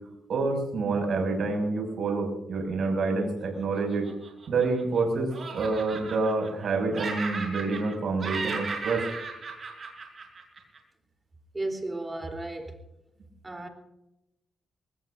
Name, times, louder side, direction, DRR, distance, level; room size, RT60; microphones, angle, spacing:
voice 1, 0.3-4.1 4.5-9.0, right 3 dB, 70° right, 3 dB, 6.6 m, -27 dB
Laughter, 3.7-5.0 5.3-6.7 6.9-7.9 8.2-10.8, right 4 dB, 50° right, 5.9 m, -36 dB
voice 2, 11.5-12.8 13.4-13.7, right 2 dB, 25° right, 4 dB, 3.7 m, -34 dB
23.5 x 19.5 x 2.7 m, 0.91 s
cardioid pair, 90°, 0 cm